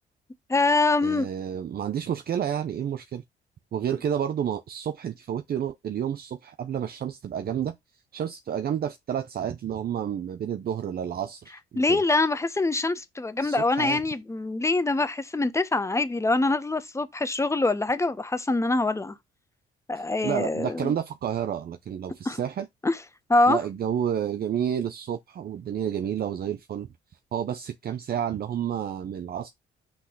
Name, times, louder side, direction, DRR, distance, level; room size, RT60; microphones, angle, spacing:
voice 1, 0.5-1.3 11.8-19.1 19.9-20.9 22.3-22.4 22.8-23.0 23.3-23.6, left 2 dB, 15° left, 0.9 m, -24 dB
voice 2, 1.0-3.2 3.7-7.7 8.1-12.0 13.4-14.0 20.0-22.7 23.5-26.9 27.3-29.5, right 9 dB, 50° right, 0.6 m, -30 dB
6.2 x 3.1 x 5.8 m
cardioid pair, 90°, 20 cm